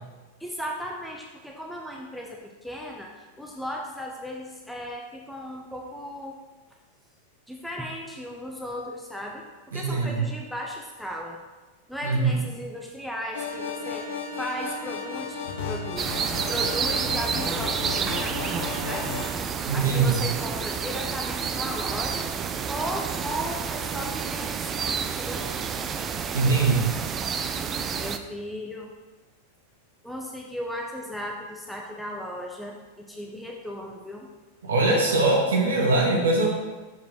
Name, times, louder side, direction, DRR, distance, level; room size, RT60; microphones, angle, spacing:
voice 1, 0.4-6.4 7.5-11.4 11.9-15.4 15.6-19.3 19.7-22.4 22.7-25.5 28.0-28.9 30.0-34.3, equal, ahead, -1 dB, 0.8 m, -36 dB
voice 2, 9.7-10.2 12.0-12.4 19.6-20.2 26.3-26.9 34.6-36.5, right 3 dB, 65° right, -2 dB, 1.8 m, -22 dB
sound 1, 13.3-19.3, left 4 dB, 55° left, 1.1 m, -34 dB
sound 2, 16.0-28.2, right 6 dB, 25° right, 0.4 m, -29 dB
6.7 x 5.1 x 4.7 m, 1.3 s
figure-of-eight pair, 90°, 0 cm